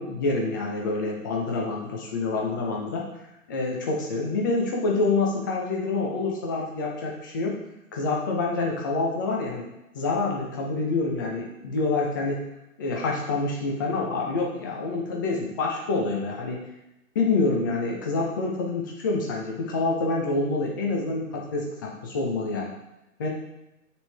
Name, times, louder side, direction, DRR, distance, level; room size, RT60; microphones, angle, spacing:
voice 1, 0.0-3.1 3.5-7.6 7.9-9.7 9.9-12.4 12.8-16.6 17.1-22.7 23.2-23.3, left 3 dB, 15° left, -1 dB, 0.5 m, -27 dB
9.1 x 3.7 x 3.3 m, 0.92 s
hypercardioid pair, 140°, 44 cm